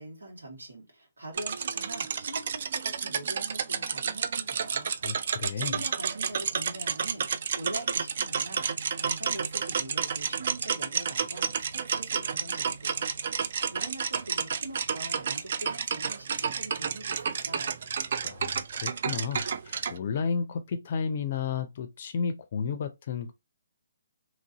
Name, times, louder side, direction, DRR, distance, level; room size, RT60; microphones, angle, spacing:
voice 1, 0.0-4.9 5.2-7.3 7.5-13.0 13.7-17.8, right 1 dB, 85° right, 1.6 m, -43 dB
sound 1, 1.3-20.0, right 6 dB, 55° right, 0.3 m, -31 dB
voice 2, 5.0-5.8 18.2-23.3, left 6 dB, 50° left, 0.4 m, -32 dB
3.0 x 2.5 x 2.8 m
hypercardioid pair, 145°, 0 cm